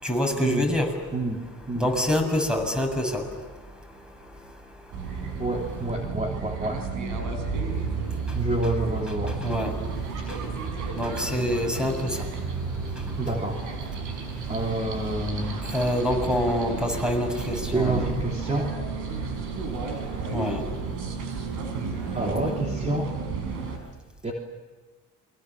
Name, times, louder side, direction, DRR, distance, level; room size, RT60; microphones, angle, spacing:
voice 1, 0.0-0.9 1.8-3.3 9.4-9.7 10.3-10.4 10.9-12.2 15.7-18.0 20.3-20.6, left 1 dB, 5° right, 4 dB, 7.0 m, -26 dB
sound 1, 4.9-23.8, right 5 dB, 90° right, 5.2 m, -32 dB
voice 2, 5.4-6.9 8.3-9.4 13.2-13.6 14.5-15.6 17.7-18.7 22.1-23.1 24.2-24.3, right 2 dB, 25° right, 0 dB, 3.3 m, -28 dB
28.5 x 23.5 x 7.4 m, 1.3 s
cardioid pair, 90°, 30 cm